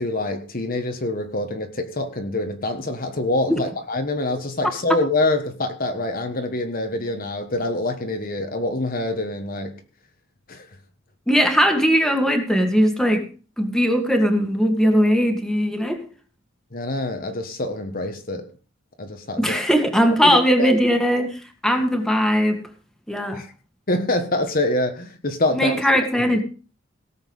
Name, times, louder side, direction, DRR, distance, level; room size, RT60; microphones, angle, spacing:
voice 1, 0.0-9.8 10.5-10.7 16.7-18.5 19.0-19.6 20.2-20.7 23.3-23.5 23.9-25.8, left 2 dB, 45° left, 1.4 m, -25 dB
voice 2, 11.3-13.3 13.6-16.0 19.4-22.6 23.1-23.4 25.5-26.4, equal, 5° left, 2.0 m, -19 dB
17.5 x 7.3 x 5.4 m
head